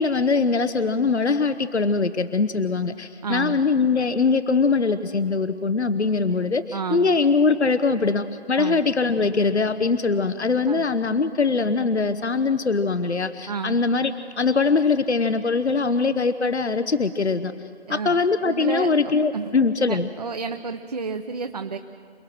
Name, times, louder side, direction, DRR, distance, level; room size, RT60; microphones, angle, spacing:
voice 1, 0.0-17.5 17.9-20.1, left 4 dB, 80° left, 11 dB, 1.1 m, -22 dB
voice 2, 3.2-3.6 6.7-7.1 8.5-8.8 10.7-10.9 13.5-13.8 17.9-18.1 18.4-19.5 19.9-21.8, right 5 dB, 35° right, 7 dB, 0.9 m, -31 dB
28.0 x 20.0 x 6.2 m, 2.2 s
figure-of-eight pair, 155°, 33 cm